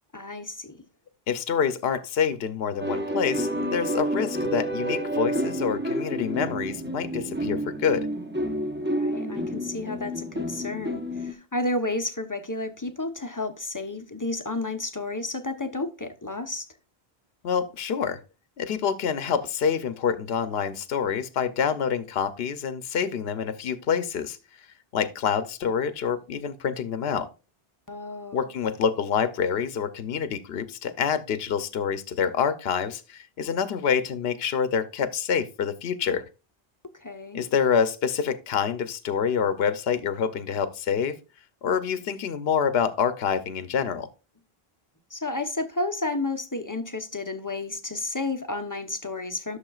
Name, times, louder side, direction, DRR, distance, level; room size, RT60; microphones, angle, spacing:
voice 1, 0.1-0.8 8.8-16.7 27.9-28.5 36.9-37.4 45.1-49.6, left 2 dB, 20° left, 0.7 m, -31 dB
voice 2, 1.3-8.1 17.4-18.2 18.6-24.4 24.9-27.3 28.3-36.2 37.3-41.2 41.6-44.1, left 7 dB, 75° left, 0.9 m, -27 dB
sound 1, 2.8-11.3, right 1 dB, 10° right, 0.8 m, -29 dB
11.5 x 6.7 x 2.4 m
omnidirectional pair, 1.0 m